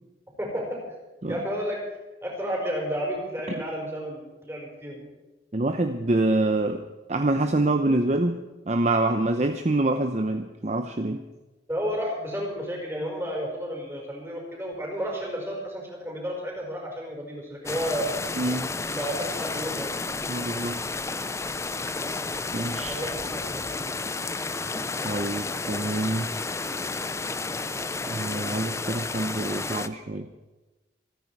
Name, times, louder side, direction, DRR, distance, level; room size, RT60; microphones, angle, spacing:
voice 1, 0.4-0.8 1.3-1.8 2.2-5.0 11.7-18.1 18.9-19.9 22.9-23.6, equal, 15° right, -1 dB, 5.0 m, -32 dB
voice 2, 5.5-6.8 7.1-8.4 8.7-11.2 18.4-18.7 20.3-20.8 22.5-23.0 25.0-26.3 28.1-30.3, right 2 dB, 40° right, 7 dB, 0.7 m, -26 dB
sound 1, 17.7-29.9, left 3 dB, 15° left, 0.5 m, -31 dB
27.5 x 9.8 x 4.7 m, 1.1 s
head